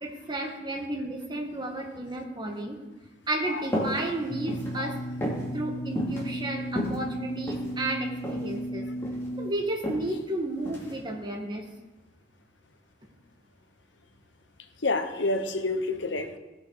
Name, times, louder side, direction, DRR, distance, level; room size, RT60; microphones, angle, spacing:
voice 1, 0.0-2.8 3.3-5.0 5.5-8.9 9.4-11.6, right 1 dB, 25° right, 1 dB, 1.6 m, -32 dB
sound 1, 3.7-4.0 4.3-4.7 5.2-5.5 6.0-6.2 6.7-7.7 8.2-8.5 8.8-9.3 9.8-10.0 10.7-10.9, equal, 15° left, 2.7 m, -31 dB
sound 2, 4.3-9.5, equal, 40° left, 1.0 m, -35 dB
voice 2, 14.8-16.4, left 2 dB, 80° left, 7 dB, 1.1 m, -28 dB
17.5 x 6.5 x 4.9 m, 1.1 s
head